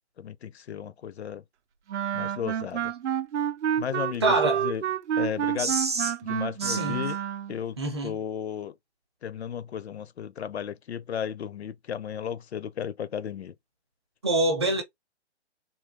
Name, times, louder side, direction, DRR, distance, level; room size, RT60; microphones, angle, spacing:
voice 1, 0.2-1.4 2.1-2.9 3.8-4.8 5.2-5.7 6.2-7.2 7.5-7.8 8.0-8.7 9.2-13.5, left 8 dB, 70° left, 0.6 m, -34 dB
Wind instrument woodwind instrument, 1.9-7.6, right 9 dB, 80° right, 0.5 m, -29 dB
voice 2, 4.2-4.6 5.5-6.1 6.6-7.0 7.8-8.2 14.2-14.8, right 2 dB, 25° right, 0.6 m, -26 dB
3.7 x 2.2 x 2.7 m
hypercardioid pair, 165°, 34 cm